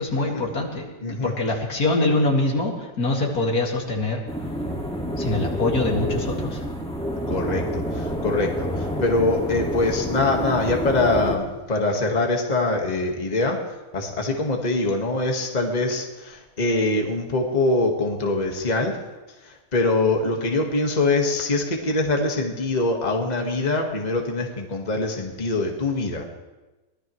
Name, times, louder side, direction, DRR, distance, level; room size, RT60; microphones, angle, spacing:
voice 1, 0.0-4.2 5.2-6.6, left 2 dB, 75° left, -1 dB, 2.8 m, -24 dB
voice 2, 1.0-1.3 7.3-13.6 13.9-19.0 19.4-26.3, left 2 dB, 30° left, 2 dB, 1.6 m, -23 dB
sound 1, 4.3-11.4, equal, 5° left, 1.8 m, -28 dB
23.5 x 18.0 x 3.1 m, 1.1 s
omnidirectional pair, 1.6 m